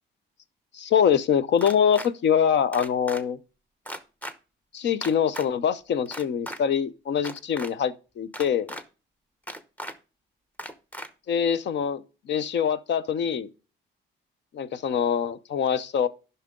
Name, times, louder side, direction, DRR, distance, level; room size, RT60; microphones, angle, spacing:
voice 1, 0.7-3.4 4.7-8.7 11.3-13.5 14.5-16.1, left 8 dB, 65° left, 0.7 m, -24 dB
sound 1, 1.6-2.1 2.7-3.2 3.8-4.3 5.0-5.5 6.1-6.6 7.2-7.7 8.3-8.8 9.5-9.9 10.6-11.1, equal, 5° left, 0.9 m, -36 dB
12.0 x 5.7 x 3.7 m
cardioid pair, 90°, 20 cm